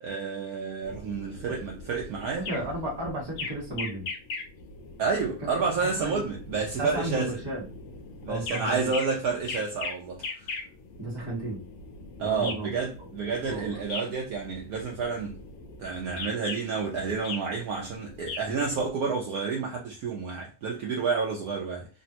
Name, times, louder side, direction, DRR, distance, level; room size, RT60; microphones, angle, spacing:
voice 1, 0.0-2.5 5.0-7.3 8.2-10.5 12.2-15.4 15.8-21.9, right 5 dB, 85° right, 0.8 m, -30 dB
sound 1, 0.8-18.9, left 3 dB, 75° left, 1.3 m, -40 dB
voice 2, 2.4-4.1 5.4-5.5 5.8-6.2 6.8-7.6 8.3-8.8 11.0-11.6 12.2-12.7 13.4-13.7, right 1 dB, 20° right, 0.7 m, -33 dB
3.4 x 2.0 x 2.8 m
omnidirectional pair, 2.2 m